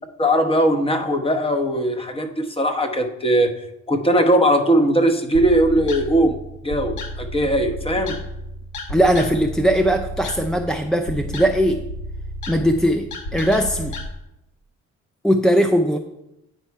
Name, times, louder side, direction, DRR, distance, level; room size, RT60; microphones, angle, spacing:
voice 1, 0.2-3.5 3.9-6.4 6.6-8.2, right 1 dB, 20° left, 5 dB, 0.9 m, -19 dB
sound 1, 5.3-14.1, left 1 dB, 75° left, 1.1 m, -32 dB
voice 2, 8.9-11.8 12.5-14.0 15.2-16.0, equal, ahead, 3 dB, 0.4 m, -19 dB
9.2 x 4.4 x 4.6 m, 0.90 s
cardioid pair, 90°, 30 cm